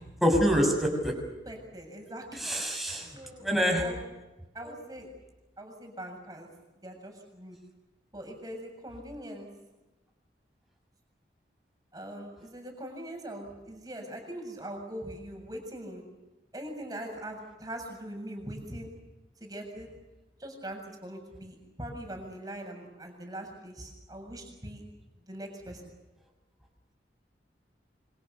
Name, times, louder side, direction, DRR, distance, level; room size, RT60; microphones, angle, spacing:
voice 1, 0.2-1.1 2.3-3.1 3.4-3.8, equal, ahead, 1 dB, 6.6 m, -25 dB
voice 2, 1.5-2.6 3.0-4.0 4.5-5.1 5.6-6.5 6.8-7.6 8.1-9.5 11.9-16.1 16.5-18.9 19.4-19.9 20.4-24.8 25.3-25.8, right 1 dB, 20° right, 3 dB, 7.2 m, -42 dB
28.0 x 26.0 x 6.8 m, 1.1 s
head